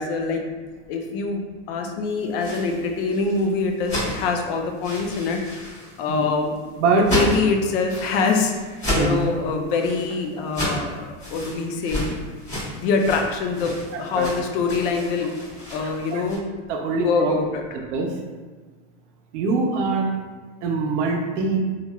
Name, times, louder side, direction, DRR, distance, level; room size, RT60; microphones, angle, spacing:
voice 1, 0.0-8.5 9.0-12.0 12.7-13.7 14.0-15.3 15.7-16.4 16.9-17.6, left 4 dB, 50° left, 3 dB, 0.4 m, -24 dB
sound 1, 2.2-16.4, equal, 20° left, 1.4 m, -31 dB
voice 2, 13.9-14.3 15.8-16.2 16.7-17.3 17.9-18.1 19.3-20.2 20.6-21.6, right 4 dB, 75° right, 1 dB, 0.6 m, -23 dB
3.0 x 2.4 x 2.2 m, 1.4 s
supercardioid pair, 140°, 36 cm